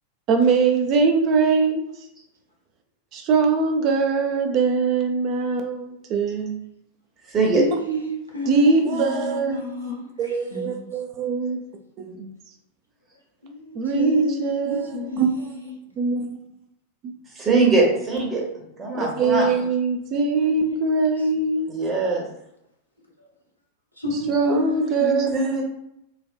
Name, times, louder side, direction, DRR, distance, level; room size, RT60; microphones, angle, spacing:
voice 1, 0.3-1.8 3.1-6.6 8.5-9.6 10.2-11.6 12.0-12.3 13.7-15.5 16.0-16.4 17.0-17.1 18.9-21.7 24.3-25.4, right 4 dB, 35° right, 0.4 m, -22 dB
voice 2, 7.5-10.9 13.4-15.8 20.4-21.3 23.2-23.3 24.0-25.4, left 2 dB, 90° left, 0.7 m, -31 dB
voice 3, 17.4-18.4 18.8-19.5 21.7-22.2 25.3-25.6, right 3 dB, 20° right, 0.9 m, -21 dB
3.3 x 2.2 x 2.4 m
figure-of-eight pair, 90°, 0 cm